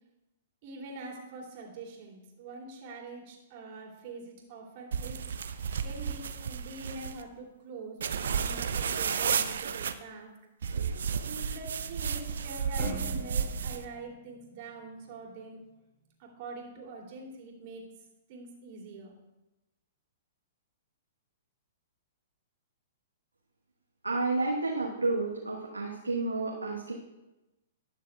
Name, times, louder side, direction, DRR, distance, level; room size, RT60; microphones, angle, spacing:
voice 1, 0.6-5.2 5.8-10.3 11.2-15.6 16.2-17.8 18.3-19.1, right 3 dB, 45° right, -1 dB, 2.7 m, -44 dB
sound 1, 4.9-7.2 8.0-9.9 10.6-13.8, right 7 dB, 65° right, 0.5 m, -32 dB
sound 2, 12.8-15.3, left 1 dB, 15° left, 3.7 m, -44 dB
voice 2, 24.0-26.9, right 3 dB, 85° right, -2 dB, 1.2 m, -30 dB
19.5 x 6.7 x 2.3 m, 0.99 s
figure-of-eight pair, 110°, 0 cm